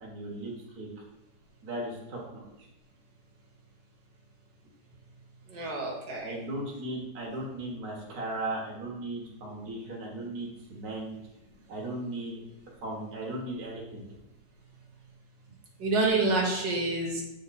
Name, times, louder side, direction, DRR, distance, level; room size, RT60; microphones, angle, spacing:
voice 1, 0.0-0.9 1.6-2.4 6.2-11.2 11.7-12.4 12.8-14.1, right 1 dB, 60° right, -3 dB, 1.9 m, -37 dB
voice 2, 5.5-6.3 15.8-17.2, right 3 dB, 85° right, -2 dB, 1.9 m, -28 dB
8.0 x 3.7 x 4.1 m, 0.96 s
omnidirectional pair, 1.9 m